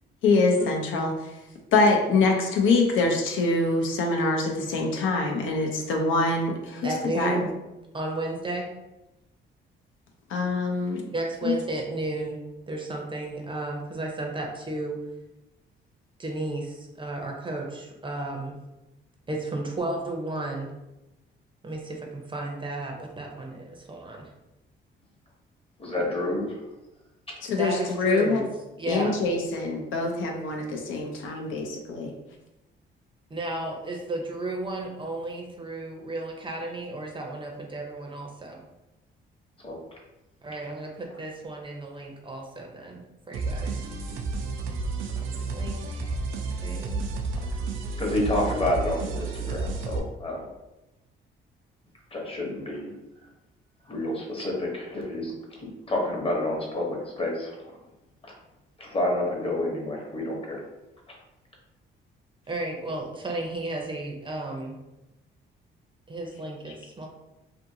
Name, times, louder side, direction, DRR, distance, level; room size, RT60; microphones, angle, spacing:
voice 1, 0.2-1.3 1.7-7.4 10.3-11.0 11.4-11.5 27.5-28.5 28.9-32.1, left 3 dB, 80° left, 2 dB, 0.6 m, -24 dB
voice 2, 6.8-7.5 7.9-8.7 11.1-12.4 12.7-15.0 16.2-18.6 19.3-20.7 21.6-24.3 27.6-28.5 28.8-29.1 33.3-38.6 40.4-43.9 45.4-46.2 46.4-47.1 62.5-64.8 66.1-67.1, right 2 dB, 25° right, 1 dB, 0.6 m, -33 dB
voice 3, 25.8-26.6 39.6-40.0 48.0-50.5 52.1-52.9 53.9-57.7 58.2-58.3 58.8-60.6, left 1 dB, 30° left, -1 dB, 0.9 m, -29 dB
sound 1, 43.3-50.0, right 3 dB, 85° right, 0.4 m, -31 dB
2.6 x 2.6 x 2.7 m, 0.97 s
cardioid pair, 90°, 20 cm